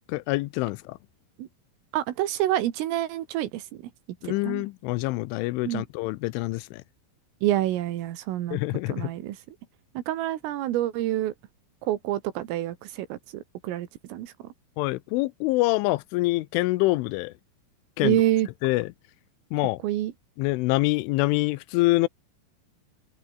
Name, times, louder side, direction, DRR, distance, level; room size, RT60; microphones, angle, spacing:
voice 1, 0.1-1.0 4.2-6.8 8.5-9.1 14.8-17.3 18.0-18.2 18.6-18.9 19.5-19.8 20.4-22.1, left 21 dB, 80° left, 3.1 m, -25 dB
voice 2, 1.9-3.8 4.2-4.6 5.6-5.8 7.4-8.6 8.9-9.6 10.0-11.3 11.8-14.3 18.0-18.5 19.8-20.1, right 13 dB, 85° right, 4.4 m, -27 dB
omnidirectional pair, 5.7 m